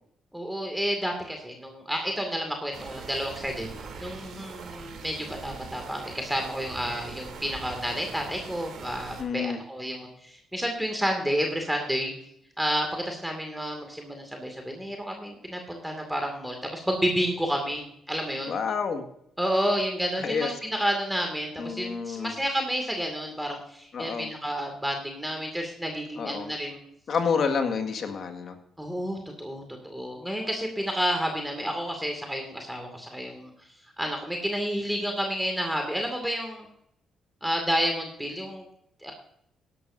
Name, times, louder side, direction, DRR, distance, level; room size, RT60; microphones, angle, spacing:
voice 1, 0.3-12.1 12.6-18.6 19.4-26.8 28.8-33.5 34.0-36.7 37.4-38.6 39.0-39.1, equal, 5° right, 3 dB, 2.3 m, -30 dB
sound 1, 2.7-9.2, right 5 dB, 70° right, 3.1 m, -42 dB
voice 2, 9.2-9.6 18.5-19.0 20.2-20.5 21.6-22.3 23.9-24.3 26.2-26.5 27.1-28.6, left 5 dB, 55° left, 6 dB, 1.8 m, -29 dB
16.0 x 11.5 x 2.7 m, 0.73 s
cardioid pair, 90°, 0 cm